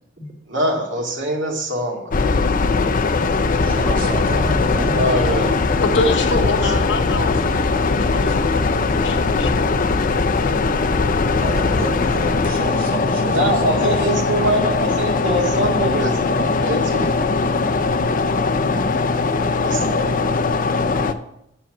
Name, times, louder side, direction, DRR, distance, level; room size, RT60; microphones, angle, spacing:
voice 1, 0.5-2.1 4.9-5.6 6.3-6.7 13.3-17.1 19.6-20.3, right 1 dB, 80° right, 0 dB, 2.1 m, -23 dB
sound 1, 2.1-21.1, left 3 dB, 45° left, 0.6 m, -20 dB
voice 2, 3.5-5.0 11.3-14.1 15.5-15.6, right 1 dB, 50° right, -1 dB, 2.2 m, -29 dB
voice 3, 5.8-9.8, left 2 dB, 85° left, 5 dB, 1.2 m, -25 dB
7.6 x 7.2 x 6.1 m, 0.81 s
head